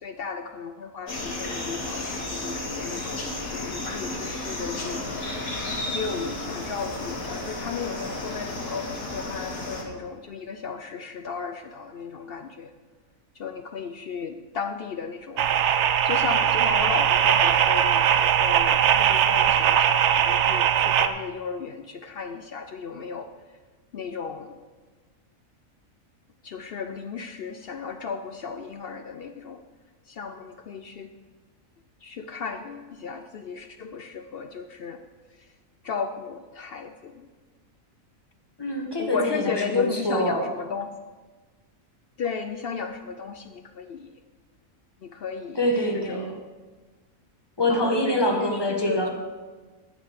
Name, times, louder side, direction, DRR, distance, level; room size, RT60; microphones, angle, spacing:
voice 1, 0.0-5.0 5.9-12.7 13.4-15.5 16.0-23.3 23.9-24.5 26.4-29.6 30.1-31.1 32.0-35.0 35.8-37.3 39.0-40.9 42.2-44.1 45.0-45.6 45.9-46.4 47.7-49.1, left 5 dB, 60° left, 8 dB, 0.7 m, -34 dB
sound 1, 1.1-9.8, left 2 dB, 80° left, 2.2 m, -33 dB
sound 2, 15.4-21.1, right 9 dB, 65° right, 0.8 m, -20 dB
voice 2, 38.6-40.5 45.5-46.3 47.6-49.1, left 1 dB, 20° left, 1 dB, 1.5 m, -25 dB
9.9 x 6.1 x 7.9 m, 1.3 s
omnidirectional pair, 1.4 m